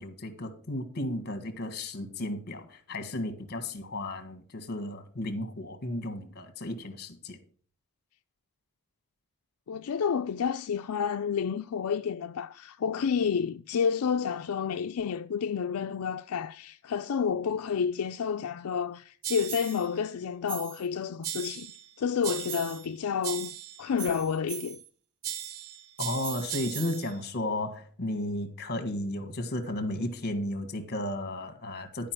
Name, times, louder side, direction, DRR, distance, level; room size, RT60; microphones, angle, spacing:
voice 1, 0.0-7.4 26.0-32.1, left 1 dB, 50° left, 1.5 m, -34 dB
voice 2, 9.7-21.7 22.0-23.5 23.8-24.8, left 6 dB, 80° left, 0.4 m, -30 dB
sound 1, 19.2-19.9 20.5-20.9 21.2-21.9 22.2-22.9 23.2-24.9 25.2-27.1, right 10 dB, 90° right, 0.7 m, -38 dB
11.0 x 5.1 x 6.0 m
head